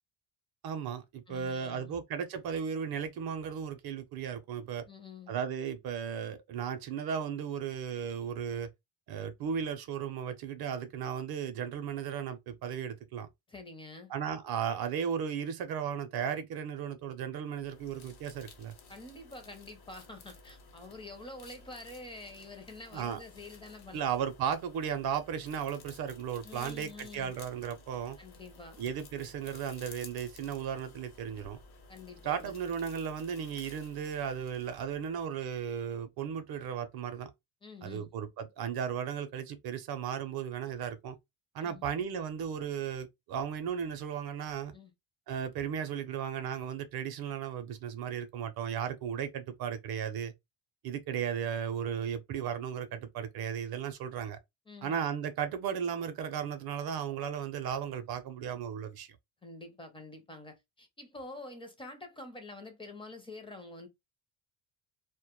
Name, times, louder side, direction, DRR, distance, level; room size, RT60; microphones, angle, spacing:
voice 1, 0.6-4.8 5.3-8.7 9.1-13.3 14.1-18.7 22.9-23.2 23.9-28.2 28.8-31.6 32.2-37.3 37.8-41.2 41.5-44.7 45.3-50.3 50.8-54.4 54.8-59.1, right 8 dB, 55° right, 0.5 m, -35 dB
voice 2, 1.3-2.0 4.9-5.3 13.5-14.1 18.9-24.0 26.4-27.3 28.2-28.8 31.9-32.6 37.6-38.1 41.6-41.8 44.7-44.9 54.7-54.9 59.4-63.9, left 2 dB, 10° left, 0.4 m, -47 dB
sound 1, 17.4-35.3, left 3 dB, 55° left, 0.8 m, -54 dB
2.1 x 2.1 x 2.9 m
cardioid pair, 125°, 47 cm